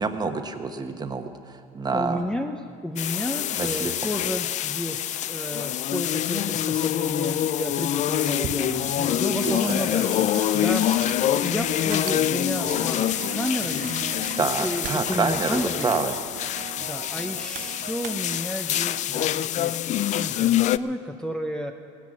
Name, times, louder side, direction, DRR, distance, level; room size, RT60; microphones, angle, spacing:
voice 1, 0.0-2.2 3.6-3.9 9.4-9.6 14.4-16.1, right 4 dB, 25° right, 6 dB, 1.2 m, -27 dB
voice 2, 1.9-15.9 16.8-19.7 20.1-21.7, left 1 dB, 5° left, 4 dB, 0.7 m, -32 dB
sound 1, 3.0-20.8, left 12 dB, 45° left, 0.4 m, -26 dB
sound 2, 6.7-6.9 7.5-18.4, right 13 dB, 50° right, 0.5 m, -38 dB
17.5 x 10.5 x 7.4 m, 2.2 s
supercardioid pair, 100°, 17 cm